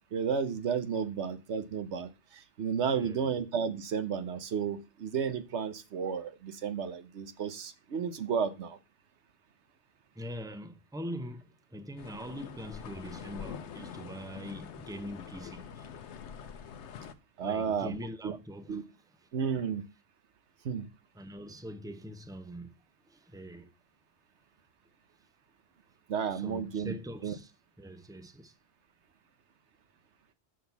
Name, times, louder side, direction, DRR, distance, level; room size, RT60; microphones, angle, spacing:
voice 1, 0.1-8.8 17.4-18.0 18.2-18.4 18.7-18.8 19.3-19.8 20.6-20.9 26.1-26.9 27.2-27.3, right 6 dB, 80° right, 1.2 m, -32 dB
voice 2, 2.9-3.3 10.1-15.9 17.4-18.8 21.1-22.7 23.1-23.7 26.3-27.5 27.8-28.5, equal, 5° right, 0.7 m, -43 dB
sound 1, 12.0-17.1, left 7 dB, 80° left, 1.1 m, -45 dB
6.1 x 6.1 x 6.9 m
omnidirectional pair, 1.2 m